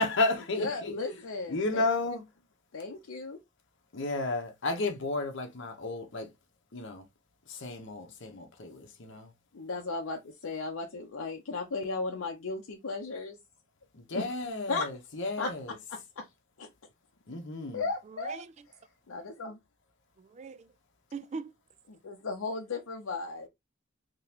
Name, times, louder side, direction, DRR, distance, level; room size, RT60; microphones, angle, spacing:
voice 1, 0.0-0.9 1.5-2.2 3.9-6.3 6.7-7.1 7.5-9.3 13.9-15.8 17.3-17.9, left 2 dB, 65° left, 1.0 m, -32 dB
voice 2, 0.6-1.8 2.7-3.4 9.5-13.4 14.1-14.2 14.7-14.9 15.4-15.5 15.9-16.3 16.6-16.7 17.7-18.4 19.1-19.6 21.9-23.5, left 3 dB, 90° left, 0.6 m, -35 dB
voice 3, 18.1-18.7 20.2-20.7 21.1-21.5, right 4 dB, 35° right, 0.3 m, -41 dB
3.8 x 2.9 x 2.8 m
head